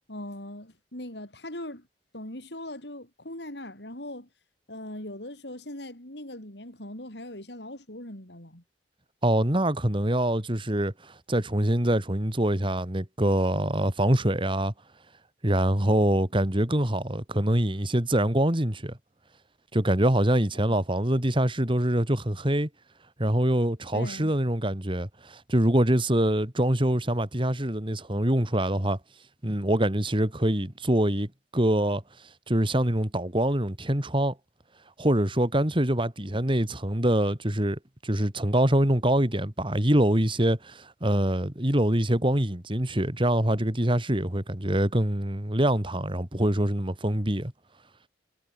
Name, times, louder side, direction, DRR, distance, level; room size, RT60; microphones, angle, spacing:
voice 1, 0.1-1.8 2.1-4.3 4.7-8.6 23.9-24.3, left 1 dB, 65° left, 6.9 m, -40 dB
voice 2, 9.2-14.7 15.4-19.0 19.7-22.7 23.2-29.0 29.4-32.0 32.5-34.3 35.0-47.5, right 1 dB, 30° right, 2.7 m, -24 dB
head